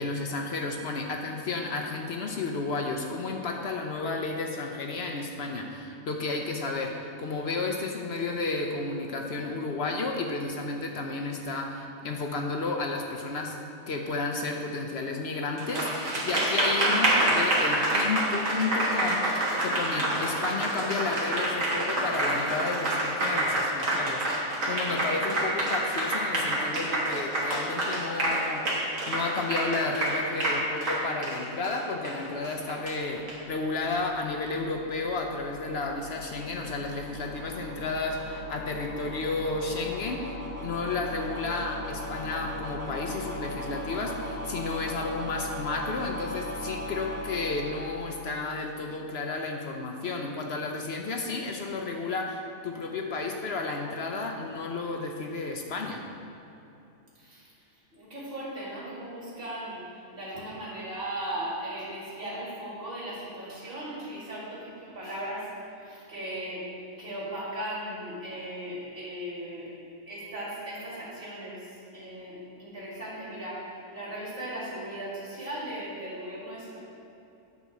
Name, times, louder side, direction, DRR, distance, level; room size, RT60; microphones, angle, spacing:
voice 1, 0.0-13.6 13.9-40.3 40.6-56.0, left 3 dB, 60° left, 2 dB, 0.8 m, -32 dB
Applause, 15.6-33.3, right 1 dB, 65° right, 1.8 m, -27 dB
sound 1, 32.8-48.8, left 1 dB, 15° right, 1.2 m, -39 dB
voice 2, 57.2-57.5 57.9-59.8 60.1-65.5 65.8-66.6 67.0-69.7 70.1-76.8, right 1 dB, 40° right, -8 dB, 2.3 m, -37 dB
9.5 x 4.1 x 6.1 m, 2.8 s
omnidirectional pair, 1.4 m